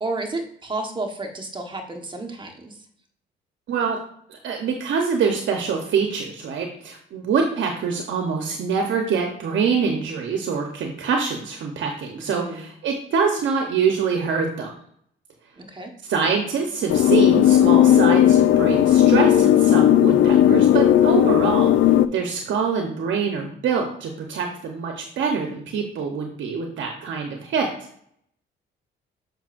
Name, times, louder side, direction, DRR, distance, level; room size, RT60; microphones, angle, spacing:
voice 1, 0.0-2.8 12.2-12.6 15.6-15.9, right 2 dB, 25° right, 4 dB, 1.3 m, -31 dB
voice 2, 4.3-14.7 16.1-27.7, right 5 dB, 70° right, 2 dB, 0.9 m, -25 dB
sound 1, 16.9-22.1, left 11 dB, 75° left, 0.4 m, -15 dB
7.2 x 5.4 x 2.6 m, 0.67 s
cardioid pair, 90°, 20 cm